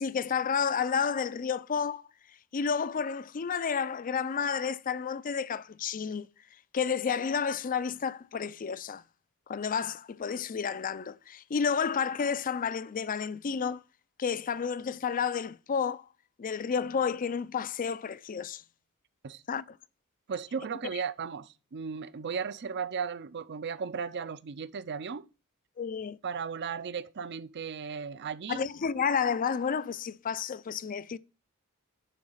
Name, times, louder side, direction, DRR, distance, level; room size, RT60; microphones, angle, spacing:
voice 1, 0.0-2.0 2.5-6.3 6.7-9.0 9.5-13.8 14.2-16.1 16.4-18.6 19.5-19.8 25.8-26.2 28.5-31.2, left 6 dB, 40° left, 0.4 m, -31 dB
voice 2, 20.3-25.3 26.2-28.6, right 6 dB, 50° right, 0.5 m, -36 dB
10.0 x 3.9 x 7.1 m
head